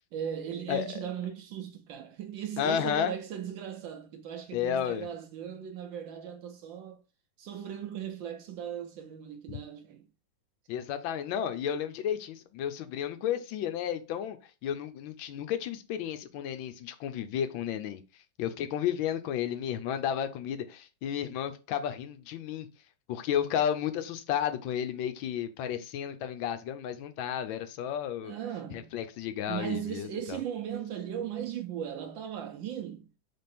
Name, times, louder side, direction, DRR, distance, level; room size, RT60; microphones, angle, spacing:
voice 1, 0.1-7.0 7.4-10.1 28.2-29.0 29.5-33.1, right 9 dB, 75° right, 1.2 m, -37 dB
voice 2, 0.7-1.1 2.6-3.1 4.5-5.1 9.5-9.6 10.7-14.4 14.6-18.0 18.4-22.7 23.1-28.3 28.7-30.4, left 9 dB, 75° left, 1.3 m, -32 dB
3.7 x 3.5 x 4.1 m
omnidirectional pair, 2.2 m